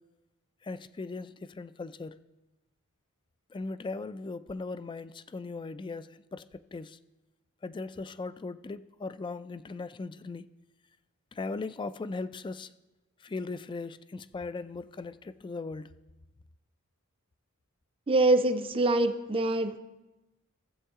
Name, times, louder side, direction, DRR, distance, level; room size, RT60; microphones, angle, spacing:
voice 1, 0.6-2.2 3.5-6.5 6.7-7.0 7.6-10.5 11.3-12.7 13.2-15.9, left 3 dB, 20° left, 0.3 m, -38 dB
voice 2, 18.1-19.8, right 2 dB, 25° right, 0.5 m, -24 dB
16.0 x 7.9 x 3.6 m
head